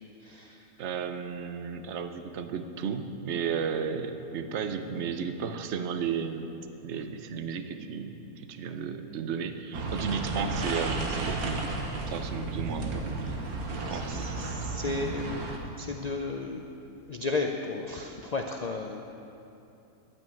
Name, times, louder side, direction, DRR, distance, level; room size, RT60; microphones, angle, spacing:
voice 1, 0.0-0.7 13.3-13.4 13.9-15.5 15.8-16.7 17.1-19.0, left 3 dB, 60° left, 3 dB, 0.4 m, -34 dB
voice 2, 0.8-6.5 6.8-14.5, right 6 dB, 55° right, 8 dB, 1.0 m, -34 dB
sound 1, 9.7-15.6, right 3 dB, 75° right, 1.8 m, -33 dB
11.0 x 9.2 x 9.0 m, 2.8 s
omnidirectional pair, 1.6 m